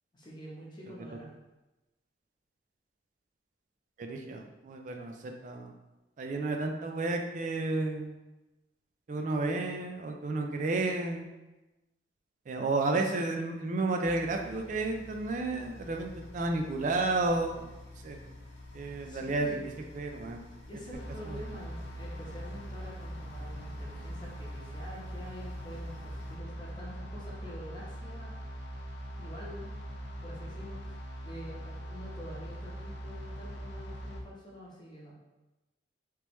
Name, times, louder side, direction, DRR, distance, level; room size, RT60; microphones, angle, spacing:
voice 1, 0.1-1.3 18.8-19.6 20.7-28.4 29.2-29.7 30.2-35.1, equal, 25° left, -5 dB, 0.8 m, -47 dB
voice 2, 4.0-5.7 6.2-8.1 9.1-11.3 12.5-17.7 18.0-18.2 18.7-20.4 21.3-21.4, right 2 dB, 40° right, 3 dB, 0.3 m, -32 dB
sound 1, 14.0-26.4, left 2 dB, 85° left, 0.8 m, -49 dB
sound 2, 20.9-34.2, equal, 65° left, 0.5 m, -41 dB
3.3 x 3.0 x 3.0 m, 1.1 s
head